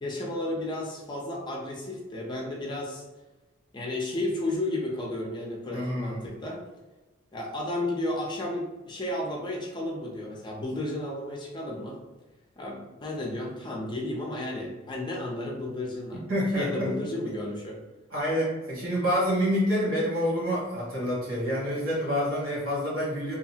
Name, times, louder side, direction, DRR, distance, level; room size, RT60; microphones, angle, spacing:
voice 1, 0.0-3.0 3.7-6.6 7.3-12.0 12.6-16.2 16.6-17.8, left 1 dB, 20° left, -2 dB, 0.4 m, -33 dB
voice 2, 5.7-6.2 16.3-16.9 18.1-23.3, equal, 70° right, -5 dB, 1.3 m, -27 dB
2.7 x 2.4 x 2.7 m, 1.1 s
head